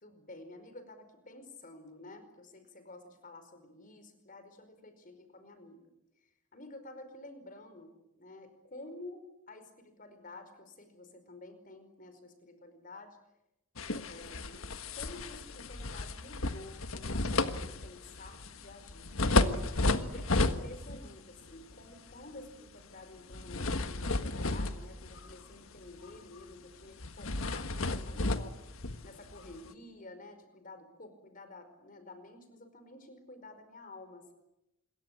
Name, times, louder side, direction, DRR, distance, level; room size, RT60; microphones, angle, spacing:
voice 1, 0.0-5.8 6.5-13.2 13.8-19.1 19.8-28.6 29.0-34.3, left 2 dB, 40° left, 10 dB, 4.9 m, -51 dB
sound 1, 13.8-21.1 21.5-21.7 23.3-25.5 25.9-26.1 26.4-26.5 27.0-29.7, left 2 dB, 75° left, 1.5 m, -32 dB
27.0 x 22.5 x 8.7 m, 0.89 s
head